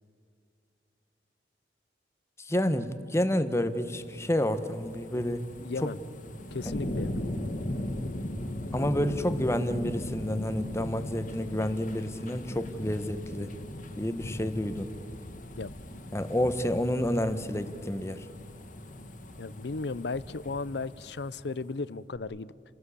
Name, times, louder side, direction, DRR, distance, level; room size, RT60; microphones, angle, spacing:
voice 1, 2.4-5.5 5.8-5.9 6.6-6.7 8.7-13.5 14.0-14.9 16.1-18.3, left 1 dB, 15° left, 11 dB, 1.1 m, -29 dB
sound 1, 3.6-21.7 22.2-22.3, left 1 dB, 45° left, 2.1 m, -38 dB
voice 2, 5.6-6.0 6.5-7.2 15.6-15.7 19.4-22.5, left 3 dB, 65° left, 18 dB, 0.6 m, -35 dB
29.5 x 18.0 x 8.5 m, 2.4 s
head